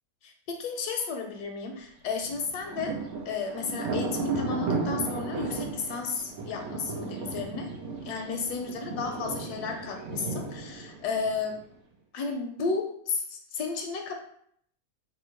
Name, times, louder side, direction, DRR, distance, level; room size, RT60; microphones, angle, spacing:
voice 1, 0.2-3.0 3.3-7.7 8.1-11.6 12.1-14.1, left 4 dB, 75° left, 3 dB, 1.1 m, -33 dB
Thunder, 2.2-11.7, right 4 dB, 80° right, 1.4 m, -34 dB
3.6 x 2.1 x 4.3 m, 0.66 s
omnidirectional pair, 1.8 m